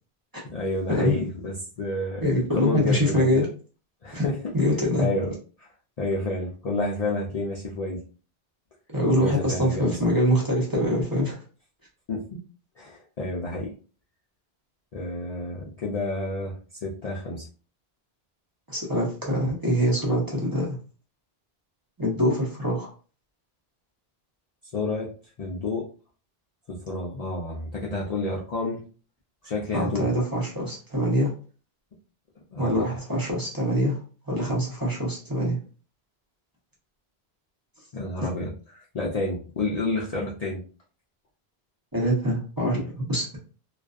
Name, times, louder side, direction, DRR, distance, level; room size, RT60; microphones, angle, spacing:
voice 1, 0.4-3.4 4.0-4.4 5.0-5.3 5.6-5.7 6.0-8.0 9.2-10.0 12.1-12.2 12.8-13.7 14.9-16.6 16.8-17.5 24.7-25.1 25.4-25.9 26.7-28.8 29.4-30.1 32.5-32.9 37.9-40.6, left 2 dB, 50° left, -3 dB, 0.5 m, -30 dB
voice 2, 2.2-3.5 4.1-4.2 4.5-5.1 8.9-11.4 18.7-20.8 22.0-22.9 29.7-31.3 32.6-34.0 34.3-35.6 41.9-43.4, equal, 25° right, -4 dB, 0.7 m, -24 dB
2.5 x 2.3 x 2.3 m, 0.37 s
omnidirectional pair, 1.1 m